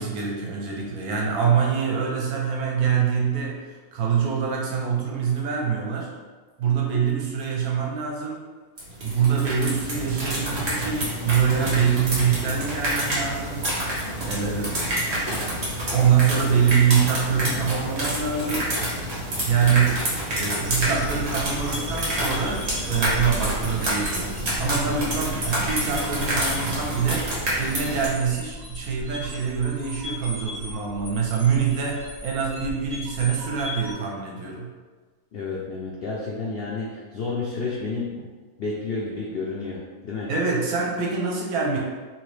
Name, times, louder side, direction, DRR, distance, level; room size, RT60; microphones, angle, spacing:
voice 1, 0.0-6.1 6.6-8.4 9.0-13.6 14.2-14.7 15.9-18.7 19.5-34.7 40.3-41.8, right 6 dB, 80° right, -2 dB, 1.1 m, -24 dB
sound 1, 8.8-28.1, right 1 dB, 50° right, 1.1 m, -28 dB
sound 2, 20.6-33.9, equal, 35° right, 0.7 m, -36 dB
voice 2, 35.3-38.3 38.6-40.3, left 3 dB, 80° left, -4 dB, 0.5 m, -31 dB
2.9 x 2.8 x 3.1 m, 1.4 s
omnidirectional pair, 1.6 m